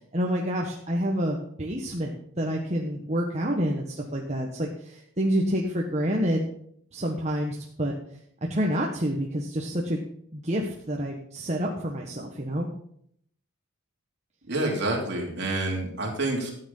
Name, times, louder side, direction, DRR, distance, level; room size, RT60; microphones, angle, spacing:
voice 1, 0.1-6.5 6.9-7.9 8.5-10.0 10.3-12.7, equal, 30° right, 0 dB, 1.3 m, -28 dB
voice 2, 14.4-16.5, right 2 dB, 50° right, -1 dB, 3.4 m, -28 dB
13.5 x 9.0 x 5.6 m, 0.68 s
head